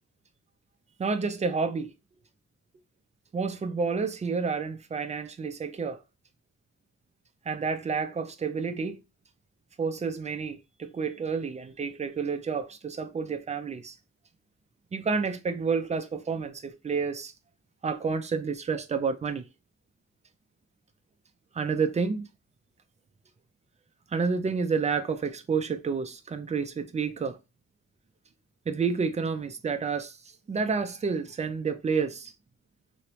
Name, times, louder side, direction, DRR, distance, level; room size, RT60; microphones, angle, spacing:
voice 1, 1.0-1.9 3.3-6.0 7.5-9.0 9.8-14.0 14.9-17.3 17.8-19.5 21.5-22.3 24.1-27.4 28.7-30.2 30.5-32.3, right 5 dB, 25° right, 0.4 m, -29 dB
3.1 x 2.9 x 3.0 m
wide cardioid pair, 155°, 31 cm